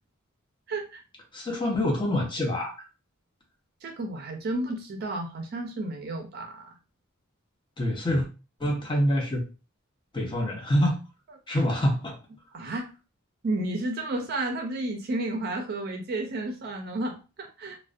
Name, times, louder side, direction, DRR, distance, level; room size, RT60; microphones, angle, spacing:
voice 1, 0.7-1.0 3.8-6.8 11.5-11.6 12.5-12.9 13.4-17.8, right 2 dB, 50° right, 0.4 m, -32 dB
voice 2, 1.3-2.7 7.8-8.3 8.6-9.4 10.1-11.0 11.5-12.2, left 1 dB, 25° left, 0.6 m, -25 dB
2.4 x 2.0 x 2.4 m
head